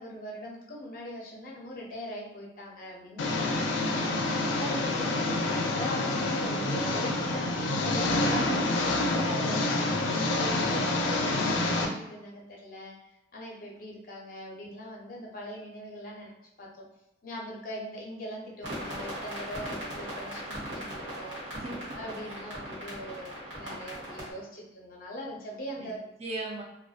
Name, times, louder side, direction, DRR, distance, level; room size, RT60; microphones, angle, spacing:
voice 1, 0.0-3.5 3.8-16.3 16.6-16.8 17.2-21.4 21.9-26.0, equal, 50° left, -3 dB, 0.6 m, -41 dB
Engine, 3.2-11.9, left 2 dB, 90° left, 0.4 m, -27 dB
voice 2, 8.3-9.0 21.5-22.4 25.8-25.9 26.2-26.6, right 2 dB, 35° right, -2 dB, 0.3 m, -38 dB
sound 1, 18.6-24.3, equal, 80° right, 1.1 m, -39 dB
2.5 x 2.2 x 2.4 m, 0.90 s
head